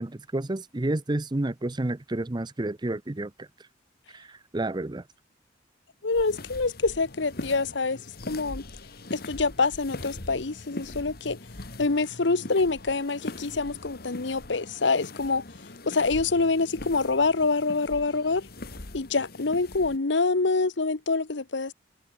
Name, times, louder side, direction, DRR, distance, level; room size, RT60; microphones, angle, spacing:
voice 1, 0.0-3.5 4.1-5.0, right 2 dB, 25° right, 0.7 m, -30 dB
voice 2, 6.0-8.0 8.3-8.6 9.1-11.4 11.8-15.4 15.9-18.4 18.9-21.7, left 3 dB, 75° left, 1.0 m, -26 dB
sound 1, 6.1-20.0, left 2 dB, 55° left, 1.9 m, -41 dB
head